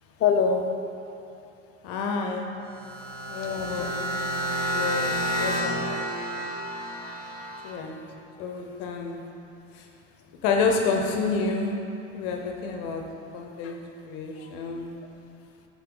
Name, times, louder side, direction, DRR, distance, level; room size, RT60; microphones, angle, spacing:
voice 1, 0.2-0.7 3.5-3.9 4.7-6.0 13.6-13.8 14.4-14.5, left 6 dB, 40° left, 3 dB, 0.8 m, -27 dB
voice 2, 1.8-2.5 3.3-4.1 7.6-8.0 8.4-9.2 9.7-9.9 10.4-11.7 12.1-13.0 13.3-15.0, left 4 dB, 75° left, 2 dB, 0.9 m, -29 dB
sound 1, 2.7-7.7, equal, 25° right, 1.3 m, -30 dB
11.5 x 4.3 x 3.8 m, 2.8 s
supercardioid pair, 110°, 36 cm